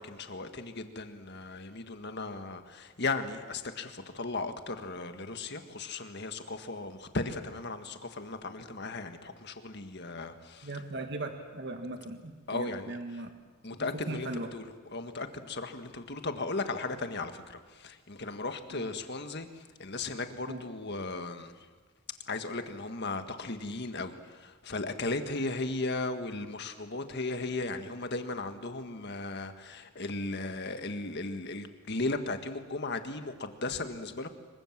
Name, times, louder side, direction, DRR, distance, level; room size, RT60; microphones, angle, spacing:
voice 1, 0.0-10.7 12.5-13.0 13.6-19.5 19.8-21.5 22.3-34.3, left 3 dB, 50° left, 7 dB, 1.7 m, -36 dB
voice 2, 10.6-13.3 13.7-14.5 18.7-18.9 20.5-20.6, right 2 dB, 55° right, 5 dB, 1.8 m, -38 dB
26.5 x 23.5 x 7.5 m, 1.3 s
head